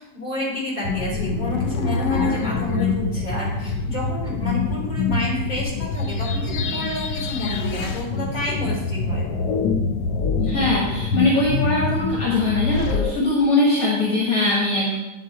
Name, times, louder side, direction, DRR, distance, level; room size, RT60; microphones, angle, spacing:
voice 1, 0.0-9.2, left 2 dB, 20° left, -6 dB, 3.0 m, -29 dB
sound 1, 0.8-13.1, left 4 dB, 85° left, 1.2 m, -25 dB
voice 2, 10.4-14.9, left 2 dB, 60° left, -4 dB, 1.8 m, -21 dB
9.3 x 4.2 x 4.6 m, 1.1 s
omnidirectional pair, 1.8 m